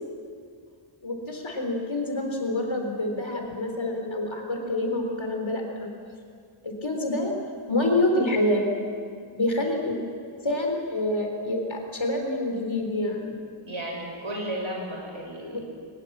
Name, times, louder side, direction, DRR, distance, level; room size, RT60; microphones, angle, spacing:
voice 1, 1.0-5.9 6.6-7.3 7.7-8.6 9.3-10.0 10.4-13.3 15.5-15.6, left 1 dB, 65° left, 3 dB, 4.1 m, -27 dB
voice 2, 13.6-15.6, right 1 dB, 70° right, -1 dB, 6.7 m, -33 dB
23.0 x 21.0 x 7.5 m, 2.2 s
wide cardioid pair, 70°, 50 cm